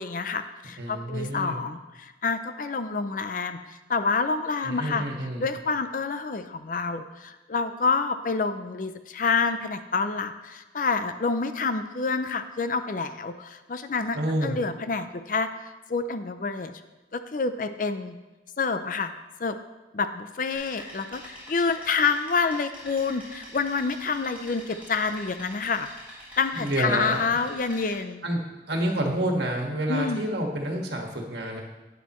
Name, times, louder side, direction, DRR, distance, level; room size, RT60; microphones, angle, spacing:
voice 1, 0.0-5.0 5.4-16.7 17.1-18.2 18.6-19.1 19.4-19.6 19.9-25.9 26.4-28.3 29.9-30.2, left 4 dB, 45° left, 10 dB, 0.5 m, -28 dB
voice 2, 0.8-1.6 4.6-5.5 14.1-14.5 26.5-27.4 28.2-28.4 28.7-31.6, right 1 dB, 65° right, 1 dB, 1.6 m, -28 dB
sound 1, 20.5-27.9, equal, 10° right, 3.3 m, -45 dB
11.5 x 9.2 x 3.1 m, 1.1 s
head